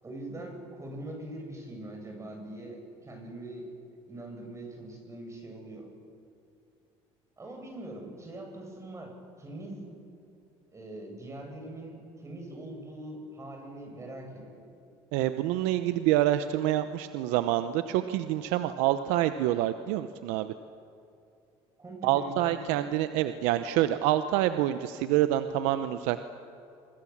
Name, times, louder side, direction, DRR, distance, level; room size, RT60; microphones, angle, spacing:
voice 1, 0.0-3.7 4.1-5.9 7.4-9.9 10.7-14.6 21.8-22.8, right 1 dB, 25° right, 2 dB, 7.8 m, -42 dB
voice 2, 15.1-20.5 22.0-26.2, right 13 dB, 80° right, 11 dB, 0.9 m, -27 dB
27.5 x 24.5 x 7.4 m, 2.7 s
supercardioid pair, 85°, 12 cm